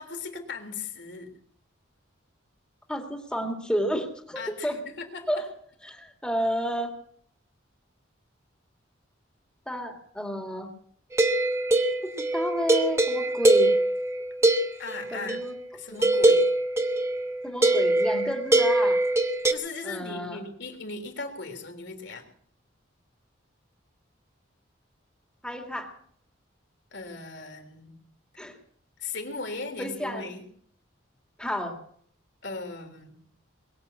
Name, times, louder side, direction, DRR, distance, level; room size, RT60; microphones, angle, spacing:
voice 1, 0.0-1.3 4.4-5.3 14.8-15.4 15.7-16.5 19.5-22.2 26.9-27.9 29.0-30.4 32.4-33.1, left 3 dB, 60° left, 4 dB, 3.6 m, -37 dB
voice 2, 2.9-4.8 5.3-5.4 5.9-6.9 9.7-10.7 12.0-13.7 15.1-15.5 15.9-16.1 17.4-19.0 19.8-20.4 25.4-25.9 28.4-28.6 29.8-30.3 31.4-31.8, equal, 5° left, 3 dB, 2.3 m, -31 dB
sound 1, 11.1-15.5 16.0-19.5, right 2 dB, 15° right, 1.0 m, -22 dB
22.0 x 7.8 x 8.4 m, 0.63 s
head